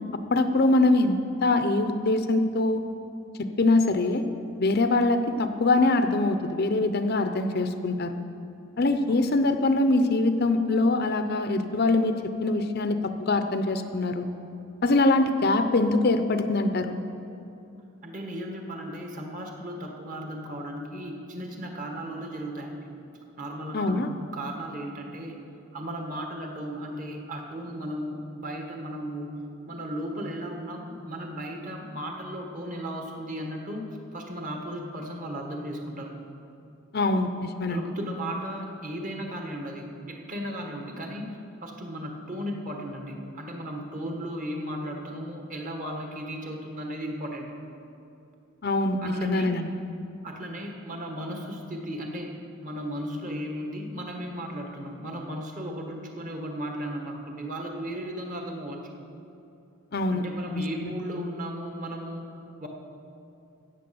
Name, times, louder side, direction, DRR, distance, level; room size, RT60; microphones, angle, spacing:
voice 1, 0.3-1.2 1.4-2.8 3.6-4.2 4.6-8.1 8.8-14.3 14.8-17.0 23.7-24.1 36.9-37.8 48.6-49.7 59.9-60.2 60.5-60.6, left 2 dB, 50° left, 8 dB, 0.6 m, -23 dB
voice 2, 18.0-22.9 23.4-25.4 25.7-29.4 29.6-36.1 37.7-41.3 41.6-47.5 49.0-49.5 50.2-52.3 52.6-58.9 60.1-62.7, equal, 40° right, 2 dB, 1.5 m, -35 dB
14.5 x 8.5 x 7.0 m, 2.7 s
head